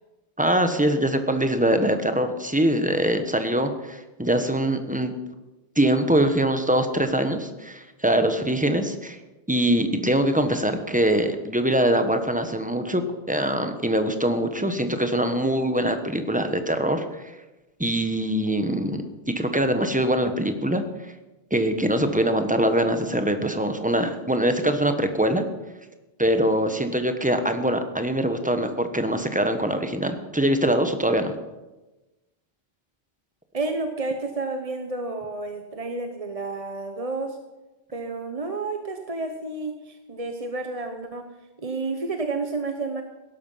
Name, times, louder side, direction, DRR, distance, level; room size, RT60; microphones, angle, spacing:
voice 1, 0.4-5.1 5.8-9.2 9.5-13.0 13.3-17.3 17.8-19.0 19.3-20.8 21.5-25.4 26.2-31.3, right 1 dB, 10° right, 7 dB, 1.2 m, -23 dB
voice 2, 33.5-37.4 37.9-41.3 41.6-43.0, right 3 dB, 35° right, 5 dB, 1.1 m, -30 dB
17.0 x 12.5 x 5.7 m, 1.1 s
omnidirectional pair, 1.0 m